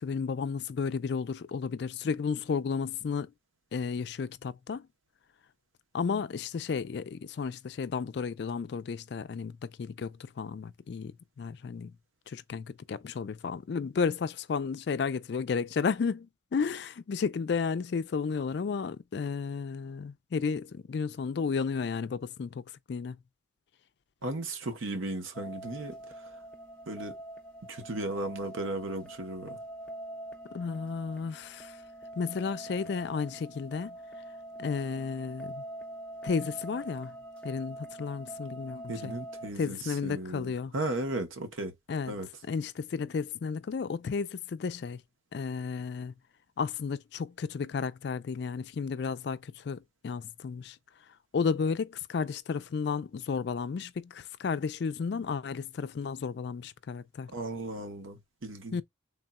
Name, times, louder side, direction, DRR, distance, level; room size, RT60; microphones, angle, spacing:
voice 1, 0.0-3.3 3.7-4.9 5.9-11.9 12.3-22.6 22.9-23.2 30.5-31.8 32.2-34.0 34.6-35.6 36.2-37.2 37.4-39.2 39.6-40.7 41.9-42.1 42.5-45.0 45.3-46.1 46.6-50.8 51.3-57.3 58.7-58.8, left 5 dB, 55° left, 0.3 m, -33 dB
voice 2, 24.2-26.2 26.9-27.2 27.7-29.6 38.9-41.7 42.1-42.3 57.3-58.8, right 2 dB, 85° right, 0.9 m, -36 dB
sound 1, 25.3-39.5, right 1 dB, 5° left, 0.6 m, -44 dB
3.6 x 2.3 x 4.0 m
head